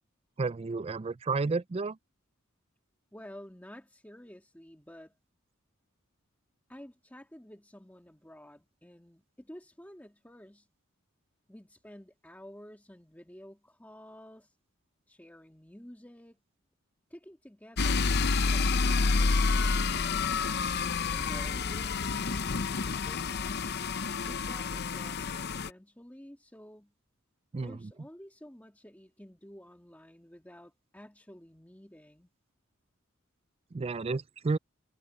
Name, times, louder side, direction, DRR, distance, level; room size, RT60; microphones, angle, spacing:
voice 1, 0.4-2.0 27.5-27.7 33.7-34.6, right 4 dB, 30° right, 0.4 m, -31 dB
voice 2, 3.1-5.1 6.7-10.7 11.5-14.6 15.1-16.4 17.1-20.3 21.1-23.3 24.3-26.9 27.6-32.3, equal, 10° left, 2.1 m, -51 dB
sound 1, 17.8-25.7, left 4 dB, 50° left, 0.7 m, -29 dB
head